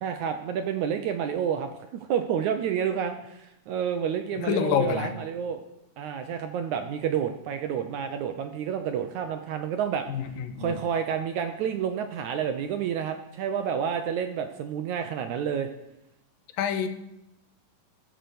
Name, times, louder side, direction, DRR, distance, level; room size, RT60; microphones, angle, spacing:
voice 1, 0.0-5.6 6.0-10.1 10.6-15.7, right 8 dB, 75° right, 6 dB, 1.9 m, -29 dB
voice 2, 4.4-5.2 10.1-10.8 16.6-16.9, left 8 dB, 80° left, 8 dB, 2.6 m, -27 dB
15.0 x 7.6 x 7.0 m, 0.87 s
omnidirectional pair, 4.1 m